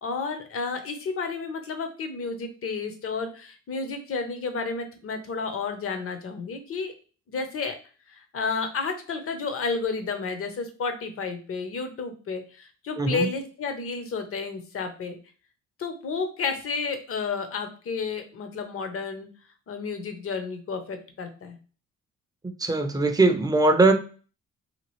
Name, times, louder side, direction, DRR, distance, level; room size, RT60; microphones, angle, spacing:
voice 1, 0.0-6.9 7.3-7.7 8.1-15.2 15.8-19.3 19.7-21.6, left 4 dB, 50° left, 7 dB, 0.7 m, -31 dB
voice 2, 13.0-13.3 22.6-23.9, right 2 dB, 15° right, 6 dB, 0.5 m, -20 dB
2.9 x 2.3 x 3.1 m, 0.38 s
cardioid pair, 90°, 30 cm